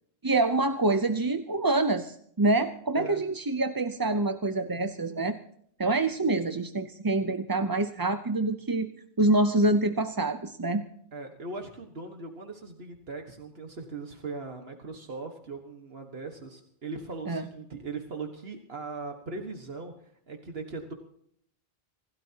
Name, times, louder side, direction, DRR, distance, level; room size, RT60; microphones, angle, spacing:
voice 1, 0.2-5.4 5.8-8.9 9.2-10.8 17.3-17.4, right 2 dB, 25° right, 8 dB, 0.7 m, -26 dB
voice 2, 11.1-20.9, right 3 dB, 75° right, 3 dB, 1.8 m, -39 dB
26.0 x 17.0 x 2.9 m, 0.68 s
omnidirectional pair, 1.0 m